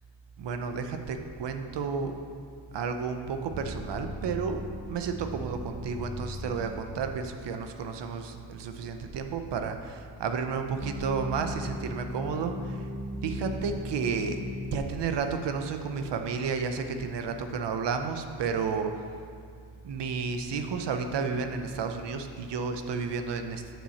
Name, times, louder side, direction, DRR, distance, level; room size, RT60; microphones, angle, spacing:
voice 1, 0.4-2.2 2.7-4.6 4.9-12.9 13.2-19.1 19.8-23.8, right 5 dB, 65° right, 6 dB, 0.9 m, -32 dB
sound 1, 3.5-6.9 10.8-14.9, left 1 dB, 5° left, 0.4 m, -38 dB
9.2 x 7.1 x 4.2 m, 2.3 s
cardioid pair, 95°, 45 cm